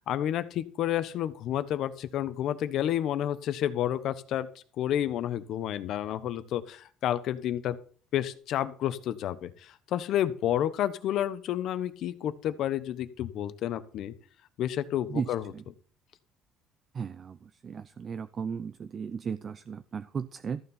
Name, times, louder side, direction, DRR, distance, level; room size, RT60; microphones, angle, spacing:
voice 1, 0.1-4.5 4.8-7.8 8.1-14.1 14.6-15.5, left 11 dB, 60° left, 13 dB, 1.1 m, -30 dB
voice 2, 16.9-17.4 17.6-20.6, right 6 dB, 35° right, 12 dB, 0.5 m, -35 dB
14.0 x 7.0 x 5.6 m, 0.42 s
cardioid pair, 140°, 0 cm